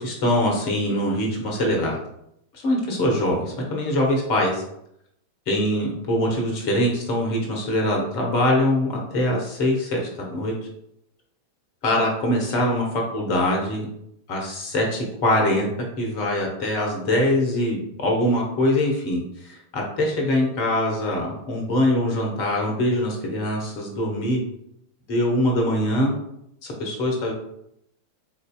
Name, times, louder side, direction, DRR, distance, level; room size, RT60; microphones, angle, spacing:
voice 1, 0.0-2.0 2.6-4.6 5.5-10.5 11.8-13.9 14.3-15.7 16.0-24.4 25.1-26.1 26.6-27.3, left 1 dB, 45° left, 0 dB, 1.0 m, -23 dB
4.0 x 2.7 x 2.3 m, 0.77 s
figure-of-eight pair, 90°, 0 cm